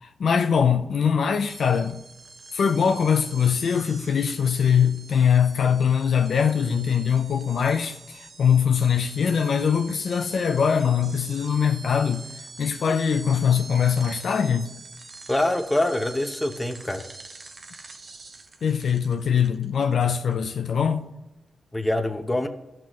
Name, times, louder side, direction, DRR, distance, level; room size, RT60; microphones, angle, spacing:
voice 1, 0.0-2.0 2.5-12.2 12.6-14.7 18.6-21.1, left 7 dB, 70° left, 0.6 m, -22 dB
sound 1, 1.5-20.6, right 3 dB, 45° right, 0.8 m, -45 dB
voice 2, 15.3-17.0 21.7-22.5, left 1 dB, 15° left, 1.0 m, -25 dB
15.5 x 6.0 x 3.1 m
cardioid pair, 95°, 0 cm